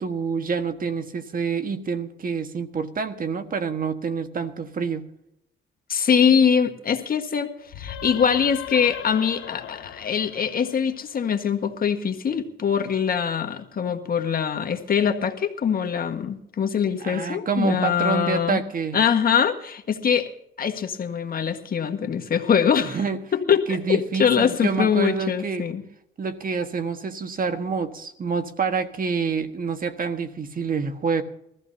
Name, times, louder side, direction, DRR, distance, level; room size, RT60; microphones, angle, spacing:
voice 1, 0.0-5.0 17.0-19.0 22.8-23.2 23.7-25.7 26.2-31.2, right 5 dB, 45° right, 8 dB, 1.5 m, -27 dB
voice 2, 5.9-18.6 18.9-20.3 20.6-23.0 23.3-25.8, left 7 dB, 45° left, 5 dB, 1.6 m, -23 dB
sound 1, 7.7-11.3, left 10 dB, 90° left, 1.5 m, -38 dB
22.0 x 14.5 x 2.8 m, 0.77 s
cardioid pair, 90°, 20 cm